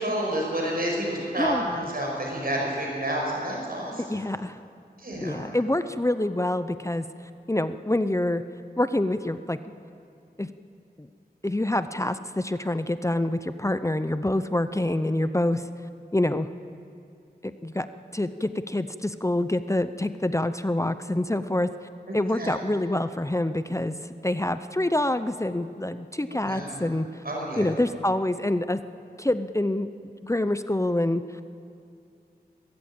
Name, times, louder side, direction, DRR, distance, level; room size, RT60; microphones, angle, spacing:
voice 1, 0.0-4.2 5.0-5.5 22.1-22.5 26.3-26.9 27.2-27.7, right 1 dB, 60° right, -2 dB, 5.7 m, -30 dB
voice 2, 1.4-1.8 4.1-4.6 5.2-7.1 7.5-8.4 8.8-9.6 10.4-10.5 11.0-11.1 11.4-15.7 16.1-16.5 17.4-17.9 18.1-21.7 22.1-23.9 24.2-27.2 27.6-28.8 29.2-29.9 30.2-31.2, left 1 dB, 15° left, 11 dB, 0.6 m, -26 dB
21.5 x 15.0 x 8.8 m, 2.5 s
wide cardioid pair, 55°, 17 cm